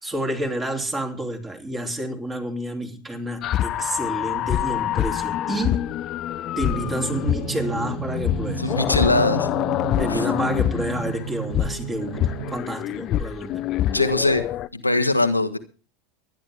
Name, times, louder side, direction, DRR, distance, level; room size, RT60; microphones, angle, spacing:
voice 1, 0.0-5.9 6.6-8.7 10.0-13.6, right 1 dB, 20° right, 3.1 m, -29 dB
sound 1, 3.4-14.7, left 12 dB, 40° left, 0.7 m, -26 dB
Drum, 6.6-12.6, right 7 dB, 60° right, 2.4 m, -33 dB
voice 2, 8.6-9.5 10.0-10.2 13.9-14.4 14.7-15.6, left 2 dB, 90° left, 1.1 m, -21 dB
23.5 x 10.5 x 3.5 m
figure-of-eight pair, 80°, 0 cm